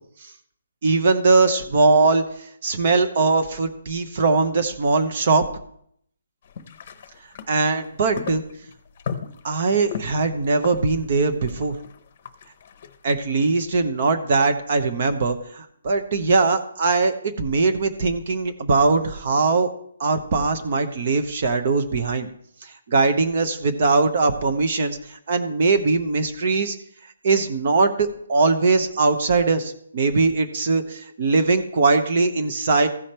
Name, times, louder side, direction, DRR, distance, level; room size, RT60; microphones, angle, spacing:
voice 1, 0.8-5.4 7.5-8.4 9.4-11.8 13.0-19.7 20.0-22.3 22.6-26.8 27.2-32.9, right 3 dB, 40° right, 7 dB, 0.9 m, -21 dB
sound 1, 6.4-13.0, left 7 dB, 35° left, 0.8 m, -36 dB
15.0 x 5.1 x 4.4 m, 0.66 s
hypercardioid pair, 170°, 0 cm